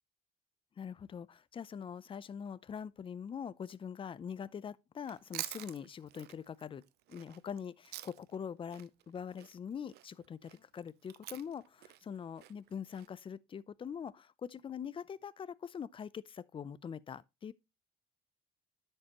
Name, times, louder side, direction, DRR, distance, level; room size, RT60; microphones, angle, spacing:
voice 1, 0.8-6.8 7.1-17.5, left 7 dB, 30° left, 0.5 m, -43 dB
Chewing mastication, 5.0-8.4 8.7-13.1, right 15 dB, 75° right, 0.6 m, -47 dB
10.0 x 6.7 x 3.0 m
cardioid pair, 110°, 17 cm